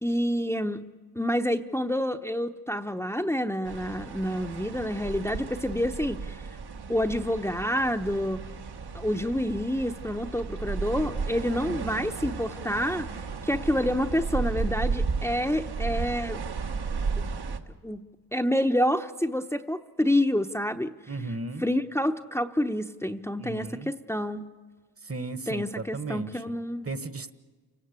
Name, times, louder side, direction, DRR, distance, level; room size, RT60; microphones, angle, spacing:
voice 1, 0.0-0.8 1.1-6.4 6.9-8.4 8.9-16.4 17.2-17.3 17.8-18.0 18.3-20.9 21.6-24.4 25.5-26.9, equal, 5° left, 5 dB, 0.9 m, -28 dB
sound 1, 3.6-17.6, right 4 dB, 65° right, 1.6 m, -34 dB
voice 2, 21.1-21.6 23.4-23.9 25.0-26.4 26.8-27.3, right 3 dB, 35° right, 12 dB, 1.4 m, -35 dB
28.5 x 18.0 x 8.3 m, 1.4 s
cardioid pair, 55°, 41 cm